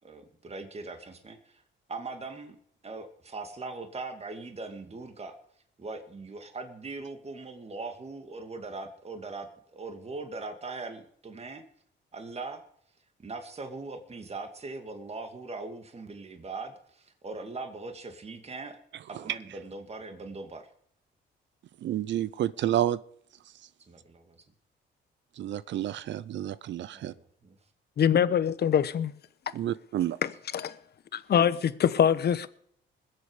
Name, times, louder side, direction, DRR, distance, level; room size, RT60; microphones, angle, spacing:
voice 1, 0.0-1.6 1.9-2.6 2.8-5.4 5.8-11.6 12.1-12.6 13.2-18.8 19.1-20.7 23.9-24.4 26.9-27.6, right 3 dB, 30° right, 2.4 m, -40 dB
voice 2, 21.8-23.0 25.4-27.1 29.5-30.2, right 12 dB, 65° right, 0.6 m, -30 dB
voice 3, 28.0-29.1 30.2-30.8 31.1-32.5, left 8 dB, 55° left, 1.0 m, -24 dB
21.0 x 8.1 x 5.1 m
cardioid pair, 90°, 20 cm